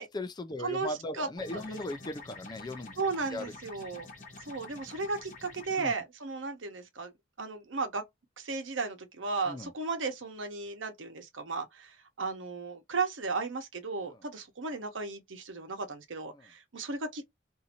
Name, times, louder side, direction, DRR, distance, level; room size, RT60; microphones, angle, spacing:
voice 1, 0.1-2.9 3.3-3.5 5.8-5.9 9.5-9.7 14.1-14.2 16.3-16.5, left 2 dB, 20° left, 0.4 m, -38 dB
sound 1, 1.4-5.7, left 3 dB, 45° left, 1.1 m, -48 dB
voice 2, 3.0-4.1 4.5-7.1 7.4-8.0 8.4-11.9 12.2-17.2, right 4 dB, 80° right, 0.9 m, -35 dB
2.7 x 2.6 x 2.8 m
head